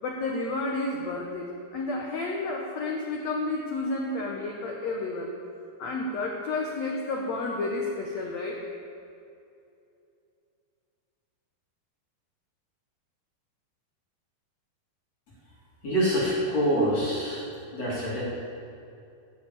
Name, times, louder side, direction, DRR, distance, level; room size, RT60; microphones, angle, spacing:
voice 1, 0.0-5.3 5.8-8.6, left 2 dB, 85° left, 0 dB, 1.5 m, -31 dB
voice 2, 15.8-17.5 17.7-18.2, equal, 45° left, -6 dB, 3.7 m, -25 dB
12.5 x 7.2 x 8.4 m, 2.6 s
omnidirectional pair, 4.6 m